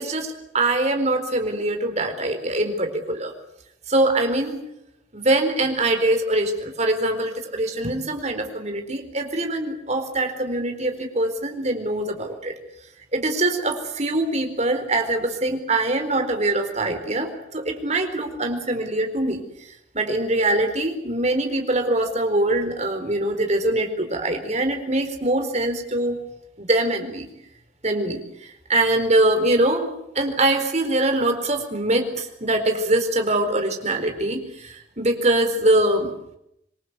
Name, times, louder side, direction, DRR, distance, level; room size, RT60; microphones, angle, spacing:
voice 1, 0.0-3.3 3.9-4.6 5.1-12.6 13.1-19.4 19.9-26.2 26.6-27.3 27.8-36.1, right 2 dB, 35° right, 5 dB, 4.3 m, -23 dB
26.5 x 22.5 x 8.2 m, 0.79 s
head